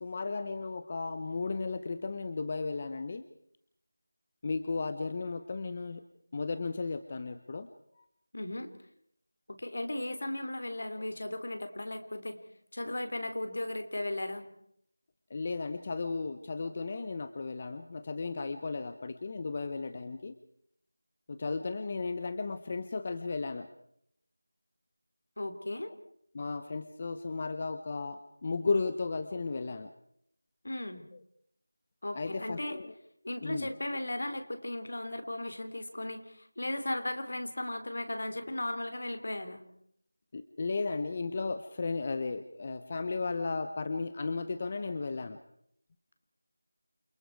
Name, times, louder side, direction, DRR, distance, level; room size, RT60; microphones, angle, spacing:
voice 1, 0.0-3.2 4.4-6.0 6.3-7.7 15.3-20.3 21.3-23.7 26.3-29.9 31.1-31.2 32.1-32.9 33.4-33.7 40.3-45.4, left 4 dB, 25° left, 10 dB, 0.9 m, -35 dB
voice 2, 8.3-8.7 9.5-12.4 12.7-14.5 25.4-25.9 30.6-31.0 32.0-32.8 33.2-39.7, left 1 dB, 60° left, 8 dB, 3.4 m, -36 dB
29.0 x 23.5 x 4.7 m, 0.70 s
figure-of-eight pair, 175°, 0 cm